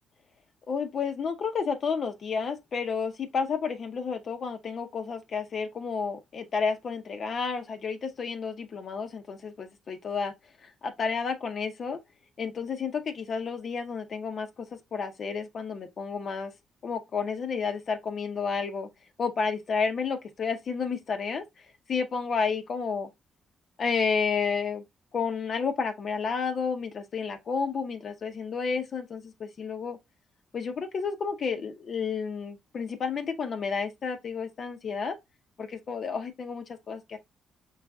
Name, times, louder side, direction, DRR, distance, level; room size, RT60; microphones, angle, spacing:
voice 1, 0.7-10.3 10.6-12.0 12.4-16.5 16.8-18.9 19.2-23.1 23.8-24.8 25.1-30.0 30.5-35.1 35.6-37.2, left 5 dB, 50° left, 0.7 m, -31 dB
4.7 x 3.3 x 2.2 m
cardioid pair, 90°, 0 cm